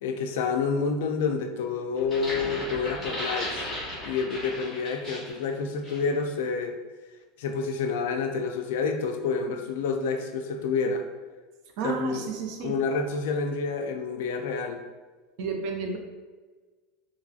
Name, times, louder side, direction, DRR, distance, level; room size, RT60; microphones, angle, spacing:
voice 1, 0.0-3.7 4.0-6.8 7.4-11.1 11.8-12.3 12.6-14.8, left 5 dB, 85° left, 5 dB, 0.3 m, -28 dB
sound 1, 2.0-5.4 5.8-6.1, left 1 dB, 5° left, 1.1 m, -35 dB
voice 2, 11.8-12.7 15.4-16.0, right 5 dB, 50° right, 3 dB, 0.4 m, -31 dB
2.9 x 2.6 x 2.4 m, 1.3 s
supercardioid pair, 175°, 0 cm